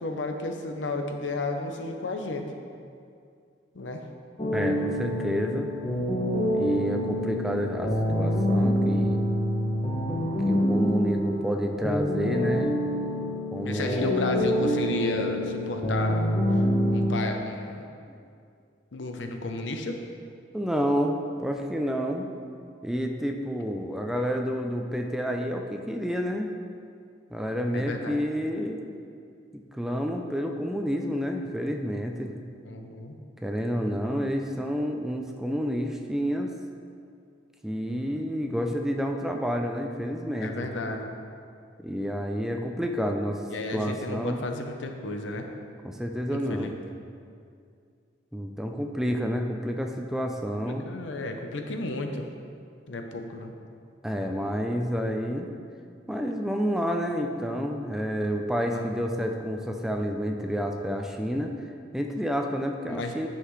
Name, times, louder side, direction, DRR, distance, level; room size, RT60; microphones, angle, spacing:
voice 1, 0.0-2.5 3.7-4.0 13.6-16.2 16.5-16.6 16.9-17.8 18.9-20.0 27.7-28.2 32.7-33.2 40.4-41.1 43.5-45.5 46.3-46.9 50.7-52.2 52.9-53.5 58.7-58.9 62.9-63.3, left 2 dB, 90° left, 4 dB, 0.7 m, -33 dB
sound 1, 4.4-17.1, equal, 25° left, 0.8 m, -26 dB
voice 2, 4.5-5.7 6.5-9.2 10.5-12.8 13.5-14.1 18.1-18.2 20.5-22.3 22.8-26.5 27.3-28.8 29.7-32.3 33.4-36.5 37.6-40.7 41.8-43.4 43.7-44.4 45.8-46.7 48.3-50.9 54.0-55.5 56.1-61.5 61.9-63.3, equal, 5° right, 3 dB, 0.4 m, -29 dB
9.7 x 5.7 x 3.2 m, 2.3 s
head